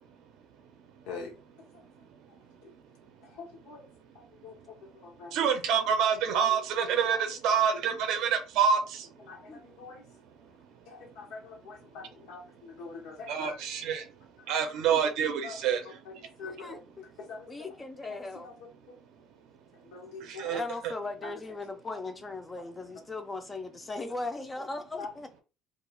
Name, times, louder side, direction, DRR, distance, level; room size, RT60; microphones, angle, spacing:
voice 1, 3.4-3.9 4.1-5.3 9.3-10.0 10.9-13.6 15.4-15.6 16.1-16.8 17.3-17.5 18.1-18.5 18.9-19.0 19.8-20.6 21.2-21.3 25.0-25.1, left 4 dB, 85° left, 0.7 m, -44 dB
voice 2, 5.3-9.1 10.1-10.2 13.3-14.1 14.5-16.3 20.2-20.9, right 7 dB, 60° right, 0.5 m, -27 dB
voice 3, 16.4-17.0 17.5-18.5 20.5-25.4, left 3 dB, 15° left, 0.4 m, -38 dB
2.3 x 2.3 x 3.0 m
cardioid pair, 170°, 0 cm